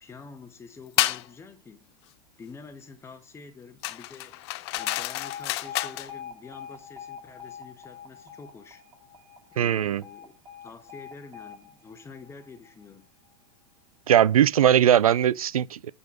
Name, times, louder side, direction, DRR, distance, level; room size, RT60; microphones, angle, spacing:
voice 1, 0.0-1.9 2.4-8.8 9.5-13.1, left 4 dB, 15° left, 1.2 m, -47 dB
sound 1, 1.0-1.3 3.8-6.1, left 18 dB, 45° left, 0.5 m, -29 dB
Alarm, 4.8-12.8, left 8 dB, 25° right, 2.6 m, -44 dB
voice 2, 9.6-10.0 14.1-15.9, right 10 dB, 75° right, 0.4 m, -20 dB
8.3 x 4.1 x 5.9 m
figure-of-eight pair, 90°, 19 cm